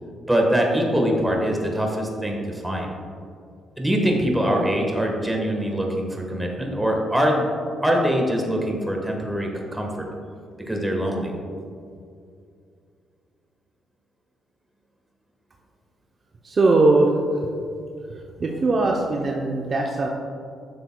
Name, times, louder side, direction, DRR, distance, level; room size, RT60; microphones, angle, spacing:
voice 1, 0.3-2.9 3.8-7.5 7.8-10.1 10.7-11.3, equal, 10° right, 1 dB, 1.3 m, -23 dB
voice 2, 16.4-17.1 18.4-20.1, right 3 dB, 40° right, 0 dB, 0.6 m, -20 dB
9.5 x 6.8 x 2.2 m, 2.3 s
cardioid pair, 90°, 0 cm